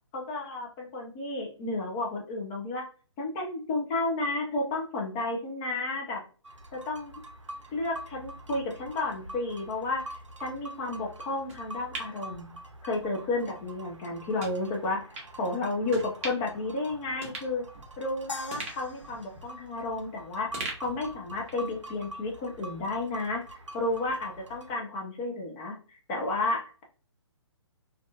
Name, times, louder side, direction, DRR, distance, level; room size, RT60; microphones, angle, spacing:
voice 1, 0.1-2.8 3.2-6.2 6.7-7.1 7.7-10.0 10.4-12.5 12.8-17.6 18.0-23.4 23.7-26.8, left 2 dB, 15° left, 0 dB, 0.3 m, -32 dB
sound 1, 6.4-24.7, right 1 dB, 85° right, 0.5 m, -46 dB
sound 2, 11.5-13.1 13.5-13.6 14.4-14.6 15.1-15.3 15.9-16.6 16.9-17.0 17.2-18.1 18.5-20.1 20.5-21.7 22.0-22.1, right 2 dB, 25° right, 0.7 m, -41 dB
sound 3, 18.3-20.7, left 3 dB, 85° left, 0.7 m, -44 dB
2.4 x 2.2 x 2.3 m, 0.38 s
figure-of-eight pair, 130°, 15 cm